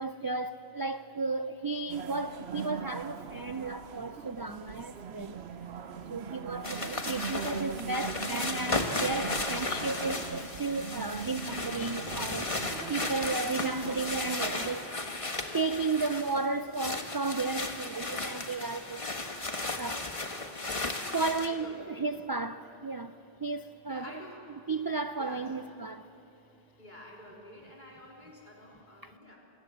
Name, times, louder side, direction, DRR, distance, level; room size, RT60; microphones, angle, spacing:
voice 1, 0.0-5.4 6.1-15.0 15.5-19.0 19.7-20.1 21.1-24.1 24.7-26.1 29.0-29.1, right 3 dB, 35° right, 0.4 m, -34 dB
sound 1, 1.9-14.8, right 6 dB, 80° right, 1.1 m, -41 dB
sound 2, 6.6-16.4 16.7-21.5, left 2 dB, 30° left, 1.4 m, -35 dB
voice 2, 6.7-7.2 21.4-22.1 23.9-24.5 25.2-25.5 26.8-29.4, left 1 dB, 50° left, 4.3 m, -49 dB
26.5 x 19.0 x 8.0 m
omnidirectional pair, 1.0 m